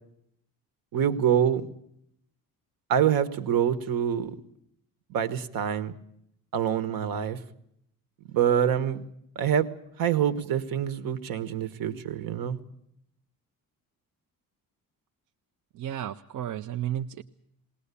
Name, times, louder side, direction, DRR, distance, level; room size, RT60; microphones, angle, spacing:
voice 1, 0.9-1.7 2.9-4.4 5.1-5.9 6.5-7.4 8.3-9.0 9.3-9.7 10.0-12.6, right 9 dB, 80° right, 13 dB, 1.5 m, -25 dB
voice 2, 15.7-17.2, right 11 dB, 65° right, 6 dB, 0.8 m, -33 dB
21.0 x 19.0 x 8.4 m, 0.73 s
cardioid pair, 165°, 34 cm